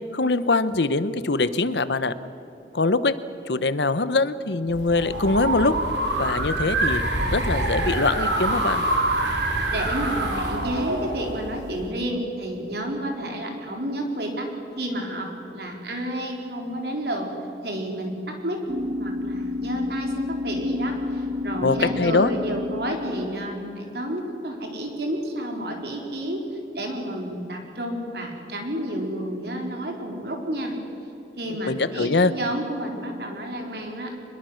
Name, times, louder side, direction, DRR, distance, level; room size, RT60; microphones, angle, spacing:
voice 1, 0.1-2.1 2.7-3.2 3.5-5.8 6.1-7.0 7.3-8.9 21.6-22.3 31.7-32.3, left 3 dB, 75° left, 14 dB, 1.0 m, -23 dB
sound 1, 4.7-11.9, right 1 dB, 80° right, 4.2 m, -25 dB
voice 2, 9.7-14.5 14.8-17.3 17.6-18.6 19.0-26.4 26.7-30.8 31.4-34.2, right 1 dB, 60° right, 2 dB, 4.2 m, -30 dB
sound 2, 18.7-23.7, left 3 dB, 40° right, 2.0 m, -30 dB
25.5 x 21.5 x 6.5 m, 3.0 s
head